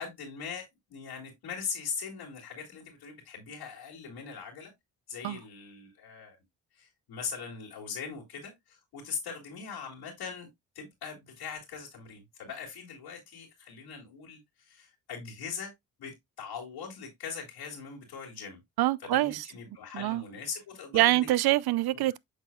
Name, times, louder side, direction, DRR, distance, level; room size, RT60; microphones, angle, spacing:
voice 1, 0.0-4.7 5.1-6.4 6.7-10.5 10.7-15.7 16.0-18.6 19.0-21.3 21.9-22.1, left 6 dB, 80° left, 2.3 m, -41 dB
voice 2, 18.8-19.4 19.9-20.2 20.9-22.2, right 16 dB, 65° right, 0.5 m, -25 dB
8.1 x 5.6 x 2.2 m
supercardioid pair, 45°, 40 cm